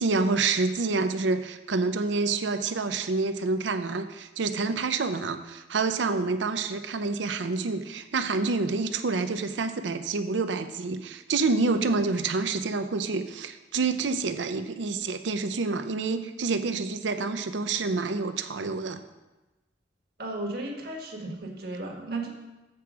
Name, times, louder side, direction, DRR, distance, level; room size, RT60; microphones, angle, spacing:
voice 1, 0.0-19.0, right 4 dB, 80° right, 9 dB, 0.5 m, -28 dB
voice 2, 20.2-22.3, right 2 dB, 60° right, 0 dB, 1.4 m, -34 dB
7.6 x 4.7 x 6.1 m, 1.1 s
head